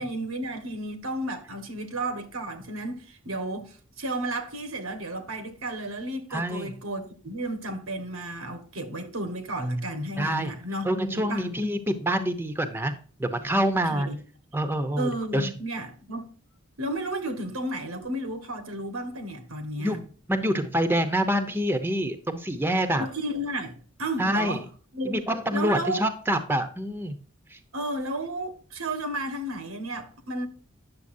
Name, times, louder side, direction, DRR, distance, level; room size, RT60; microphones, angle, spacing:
voice 1, 0.0-11.5 13.9-14.2 15.0-16.3 16.8-20.0 23.0-24.6 24.9-25.2 25.5-26.0 27.7-30.5, right 1 dB, 90° right, 1.6 m, -33 dB
voice 2, 6.3-6.7 10.2-10.5 10.8-12.9 13.2-14.1 14.5-15.5 19.8-23.1 24.2-24.6 25.0-27.2 27.5-27.6, equal, 10° right, 0.8 m, -26 dB
9.6 x 6.9 x 2.7 m
head